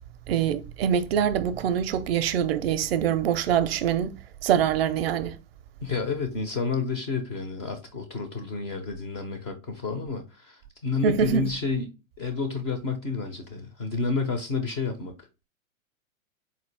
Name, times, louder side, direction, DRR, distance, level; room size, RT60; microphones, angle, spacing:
voice 1, 0.3-4.1 4.4-5.4 11.0-11.5, right 9 dB, 50° right, 0.4 m, -24 dB
voice 2, 5.8-11.9 12.2-15.1, left 4 dB, 20° left, 0.3 m, -30 dB
4.0 x 2.4 x 3.2 m
hypercardioid pair, 110°, 41 cm